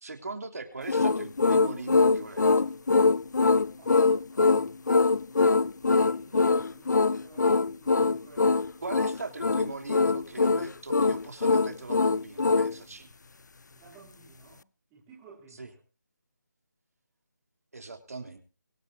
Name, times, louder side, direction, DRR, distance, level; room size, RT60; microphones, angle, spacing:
voice 1, 0.0-2.7 8.8-13.1 15.6-15.7 17.7-18.4, right 3 dB, 55° right, 3.3 m, -40 dB
sound 1, 0.9-12.7, left 4 dB, 75° left, 0.6 m, -23 dB
voice 2, 3.8-4.8 5.0-8.6 13.7-14.7 14.9-15.8, right 4 dB, 10° right, 3.4 m, -53 dB
24.0 x 9.9 x 2.8 m
figure-of-eight pair, 175°, 10 cm